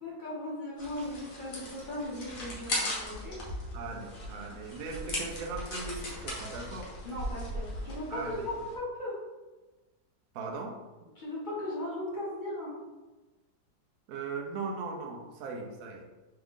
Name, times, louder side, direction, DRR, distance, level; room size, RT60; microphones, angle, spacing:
voice 1, 0.0-3.4 7.0-9.1 11.2-12.7, left 1 dB, 30° left, -7 dB, 1.2 m, -37 dB
sound 1, 0.8-8.8, left 1 dB, 50° left, 1.4 m, -38 dB
voice 2, 3.7-6.9 8.1-8.5 10.3-10.8 14.1-16.1, right 4 dB, 65° right, 1 dB, 1.0 m, -39 dB
3.6 x 3.6 x 3.6 m, 1.2 s
omnidirectional pair, 2.0 m